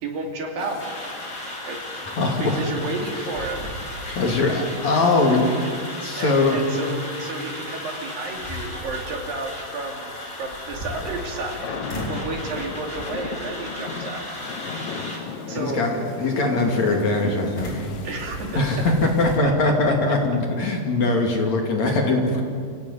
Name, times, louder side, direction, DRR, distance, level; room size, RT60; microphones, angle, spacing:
voice 1, 0.0-0.8 1.7-1.8 2.4-3.7 5.6-5.7 6.2-11.7 12.1-14.2 15.5-15.8 18.0-18.6 19.4-19.7, right 3 dB, 60° right, 2 dB, 4.3 m, -32 dB
sound 1, 0.6-19.4, left 5 dB, 65° left, 3.1 m, -39 dB
sound 2, 0.8-15.2, left 1 dB, 15° left, 4.2 m, -36 dB
voice 2, 2.1-2.6 4.1-5.6 6.0-6.6 15.5-17.8 18.5-22.4, left 2 dB, 50° left, 1 dB, 3.4 m, -21 dB
sound 3, 3.3-4.3 4.7-4.8 7.5-7.6 8.2-9.1 10.4-11.5 11.9-12.4 12.9-13.3 14.1-14.6 17.6-19.4, equal, 30° left, 5.1 m, -36 dB
28.5 x 16.0 x 9.7 m, 2.3 s
omnidirectional pair, 4.6 m